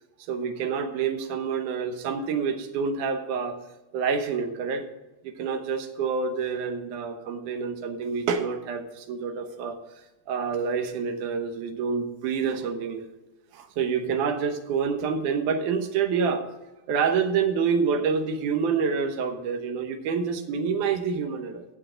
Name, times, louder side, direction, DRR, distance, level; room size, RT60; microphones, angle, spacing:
voice 1, 0.3-3.6 3.9-4.9 5.2-9.8 10.3-13.1 13.5-16.4 16.9-21.7, right 6 dB, 85° right, 7 dB, 2.5 m, -27 dB
15.0 x 7.7 x 3.8 m, 1.0 s
omnidirectional pair, 3.5 m